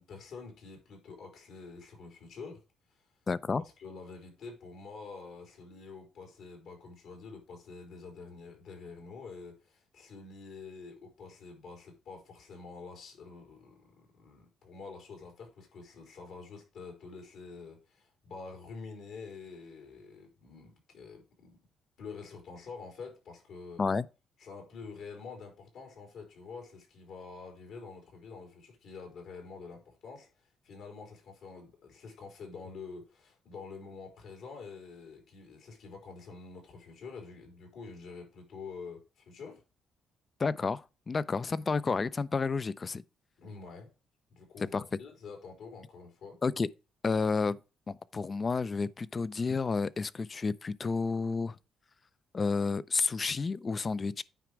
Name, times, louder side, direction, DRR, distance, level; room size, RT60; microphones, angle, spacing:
voice 1, 0.0-2.6 3.8-21.6 22.0-23.8 24.4-30.3 30.6-39.6 43.4-43.9 44.3-46.4, left 4 dB, 75° left, 4.2 m, -47 dB
voice 2, 3.3-3.6 23.8-24.1 40.4-43.0 44.6-44.8 46.4-46.7 47.0-47.6 47.9-51.6 52.3-54.2, left 4 dB, 30° left, 0.5 m, -30 dB
9.2 x 5.1 x 4.6 m
cardioid pair, 110°, 0 cm